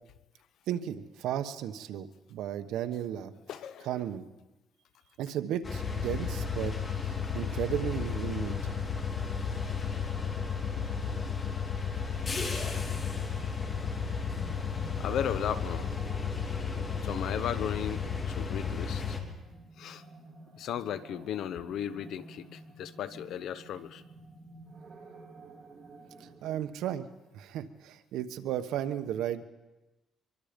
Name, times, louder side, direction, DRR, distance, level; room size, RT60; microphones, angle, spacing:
voice 1, 0.7-3.3 3.8-4.3 5.2-6.7 7.0-8.8 26.2-27.1 27.3-29.4, right 10 dB, 85° right, 10 dB, 1.1 m, -34 dB
voice 2, 3.5-4.0 15.0-15.9 17.0-19.2 19.8-20.0 20.6-24.0, left 9 dB, 70° left, 13 dB, 0.9 m, -35 dB
sound 1, 5.6-19.2, left 6 dB, 25° left, 2.8 m, -33 dB
sound 2, 12.0-26.7, right 2 dB, 30° right, 4.8 m, -52 dB
24.0 x 23.5 x 5.2 m, 1.0 s
cardioid pair, 135°, 0 cm